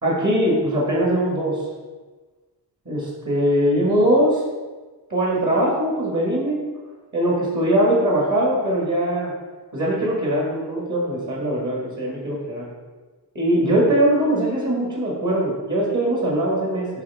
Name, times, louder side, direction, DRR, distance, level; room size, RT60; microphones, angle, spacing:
voice 1, 0.0-1.6 2.9-4.4 5.1-6.6 7.1-9.3 9.7-12.7 13.3-16.9, right 1 dB, 45° right, -4 dB, 2.0 m, -21 dB
10.5 x 3.6 x 3.6 m, 1.3 s
wide cardioid pair, 95°, 42 cm